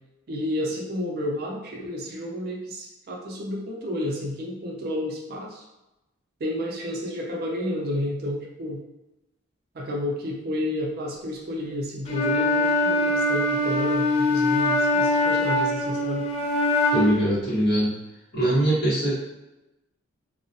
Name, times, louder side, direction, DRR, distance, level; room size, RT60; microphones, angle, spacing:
voice 1, 0.3-5.7 6.4-8.8 9.7-16.3, left 1 dB, 50° right, 0 dB, 0.4 m, -31 dB
Wind instrument woodwind instrument, 12.1-17.2, left 1 dB, 30° left, 0.3 m, -23 dB
voice 2, 16.9-18.0 18.3-19.2, right 1 dB, 50° left, -9 dB, 1.1 m, -22 dB
2.3 x 2.1 x 2.6 m, 0.95 s
head